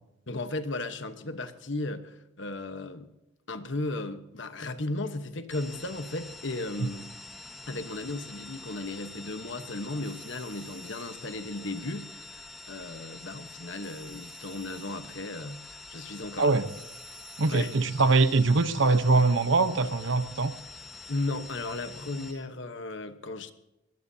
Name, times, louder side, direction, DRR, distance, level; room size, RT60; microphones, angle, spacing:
voice 1, 0.3-3.1 3.5-7.1 7.7-16.5 17.5-17.7 21.1-23.5, left 2 dB, 60° left, 1.1 m, -35 dB
sound 1, 5.5-22.3, left 3 dB, ahead, 1.3 m, -46 dB
sound 2, 10.0-11.2 13.8-15.0 16.7-17.9, right 7 dB, 25° right, 4.6 m, -55 dB
voice 2, 16.4-16.7 17.4-20.5, right 3 dB, 65° right, 0.9 m, -23 dB
22.5 x 19.0 x 2.8 m
head